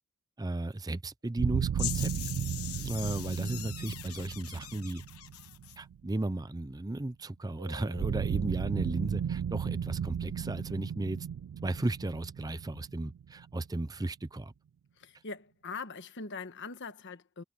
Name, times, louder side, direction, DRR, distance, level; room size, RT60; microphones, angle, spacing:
voice 1, 0.4-2.1 2.8-5.0 5.8-11.3 11.6-14.5, right 2 dB, 15° right, 0.5 m, -35 dB
sound 1, 1.4-6.3 8.0-13.6, right 8 dB, 70° right, 0.3 m, -35 dB
sound 2, 1.8-5.8, left 14 dB, 90° left, 1.1 m, -41 dB
Keyboard (musical), 7.6-10.3, right 4 dB, 85° right, 3.5 m, -54 dB
voice 2, 15.0-17.4, left 4 dB, 55° left, 1.4 m, -42 dB
head